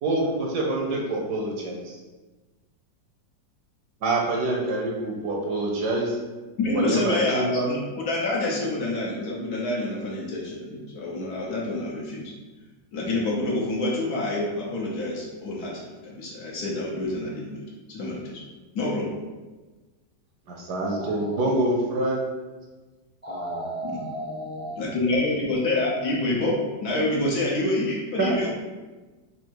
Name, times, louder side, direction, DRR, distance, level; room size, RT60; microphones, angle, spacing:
voice 1, 0.0-2.0 4.0-6.2 6.7-7.7 20.5-22.2 28.2-28.3, right 2 dB, 70° right, -1 dB, 1.2 m, -26 dB
voice 2, 6.6-12.3 12.9-17.6 17.9-18.4 18.7-19.2 23.8-24.0 24.8-28.5, left 2 dB, 60° left, -3 dB, 1.3 m, -27 dB
voice 3, 21.0-21.4 23.2-24.8, right 1 dB, 10° left, -6 dB, 0.6 m, -34 dB
4.3 x 2.7 x 4.5 m, 1.2 s
omnidirectional pair, 2.0 m